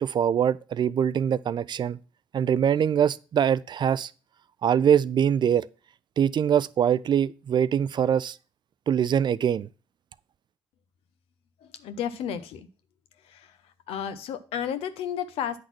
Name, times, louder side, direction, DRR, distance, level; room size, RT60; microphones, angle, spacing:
voice 1, 0.0-2.0 2.3-4.1 4.6-5.6 6.2-8.4 8.9-9.7, right 8 dB, 50° right, 0.4 m, -23 dB
voice 2, 11.6-12.7 13.2-15.6, left 9 dB, 75° left, 0.8 m, -33 dB
8.5 x 4.0 x 5.9 m
supercardioid pair, 60°, 10 cm